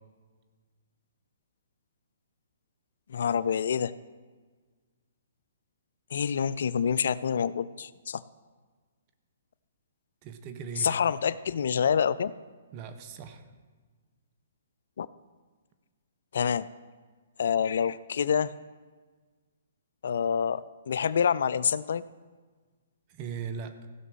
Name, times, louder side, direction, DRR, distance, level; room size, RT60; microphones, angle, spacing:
voice 1, 3.1-3.9 6.1-8.2 10.8-12.3 15.0-15.1 16.3-16.7 17.4-18.5 20.0-22.0, left 7 dB, 65° left, 18 dB, 0.3 m, -27 dB
voice 2, 10.2-11.0 12.7-13.4 23.1-23.7, right 6 dB, 35° right, 9 dB, 1.1 m, -38 dB
15.5 x 6.0 x 6.2 m, 1.4 s
hypercardioid pair, 130°, 0 cm